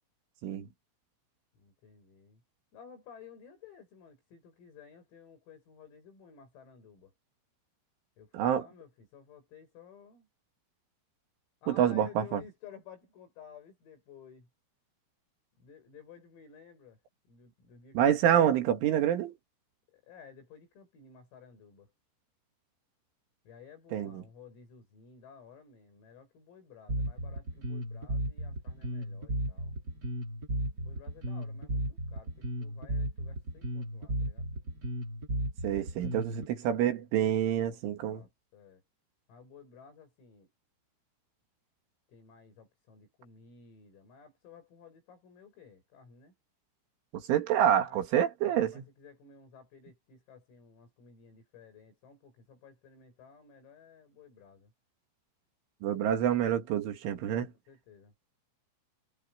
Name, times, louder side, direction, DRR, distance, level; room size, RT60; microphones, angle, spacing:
voice 1, 1.5-2.4 2.7-7.1 8.2-10.3 11.6-14.5 15.6-18.4 19.9-21.9 23.4-29.8 30.8-34.5 37.5-38.8 39.3-40.5 42.1-46.4 47.9-48.0 48.4-54.7 56.0-56.3 57.7-58.1, left 6 dB, 80° left, 10.0 m, -54 dB
voice 2, 8.3-8.6 11.7-12.4 17.9-19.4 23.9-24.2 35.6-38.2 47.1-48.8 55.8-57.5, right 10 dB, 70° right, 4.6 m, -27 dB
Bass guitar, 26.9-36.5, equal, 20° right, 3.9 m, -34 dB
omnidirectional pair, 5.9 m